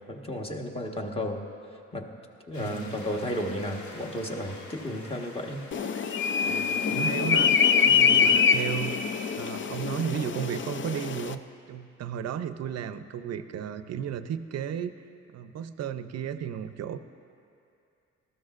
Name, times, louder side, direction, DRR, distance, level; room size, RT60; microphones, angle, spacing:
voice 1, 0.1-1.4 1.9-2.1 2.5-5.6, equal, 20° left, 1 dB, 1.4 m, -33 dB
sound 1, 2.5-8.0, left 2 dB, 70° left, 1.5 m, -46 dB
voice 2, 2.6-2.9 6.4-7.6 7.9-9.0 9.4-11.4 11.7-14.9 15.3-17.0, right 8 dB, 55° right, 11 dB, 0.6 m, -34 dB
sound 2, 5.7-11.3, left 6 dB, 40° left, 0.5 m, -24 dB
19.0 x 14.0 x 2.5 m, 2.5 s
cardioid pair, 90°, 30 cm